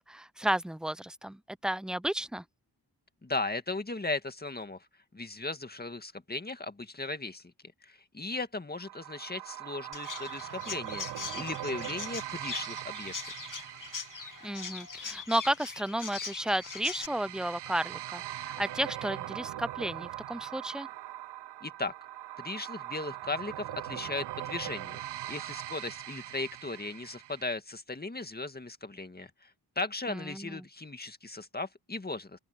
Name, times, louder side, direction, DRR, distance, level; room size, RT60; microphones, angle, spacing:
voice 1, 0.0-2.4 14.4-20.9 30.1-30.7, right 1 dB, ahead, 0.5 m, -33 dB
voice 2, 3.2-4.9 5.1-7.4 7.8-13.1 21.6-21.9 22.4-25.0 25.3-29.5 29.8-32.4, left 2 dB, 25° left, 2.1 m, -37 dB
sound 1, 8.8-27.4, right 14 dB, 85° right, 0.5 m, -41 dB
Chirp tweet, 9.9-17.1, left 5 dB, 50° left, 2.3 m, -41 dB
open air
cardioid pair, 70°, 39 cm